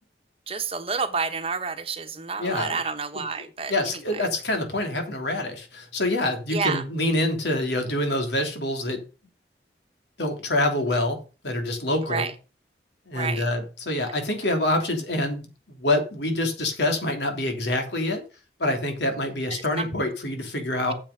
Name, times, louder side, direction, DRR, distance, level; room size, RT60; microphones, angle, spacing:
voice 1, 0.5-3.7 6.5-6.8 12.1-12.3 13.1-13.5 19.8-19.9, right 5 dB, 35° right, 1.1 m, -29 dB
voice 2, 2.4-2.8 3.1-3.2 3.7-9.0 10.2-11.2 11.4-12.3 13.1-18.2 18.6-20.9, left 1 dB, 80° left, 3.2 m, -26 dB
9.2 x 7.6 x 5.1 m
head